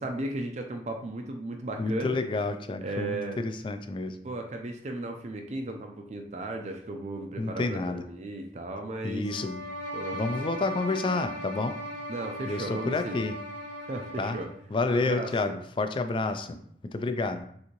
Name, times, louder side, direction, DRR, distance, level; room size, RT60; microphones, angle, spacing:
voice 1, 0.0-2.2 2.8-3.4 4.2-9.3 9.9-10.2 12.1-13.2 13.9-14.5 14.9-15.5, right 2 dB, 40° right, 3 dB, 0.4 m, -35 dB
voice 2, 1.8-4.2 7.4-8.0 9.0-9.6 10.1-11.8 12.5-13.4 14.2-14.4 14.7-16.6 16.9-17.4, left 3 dB, 30° left, 8 dB, 0.3 m, -29 dB
sound 1, 9.2-14.6, equal, 80° left, 1.2 m, -38 dB
6.4 x 2.6 x 3.0 m, 0.66 s
head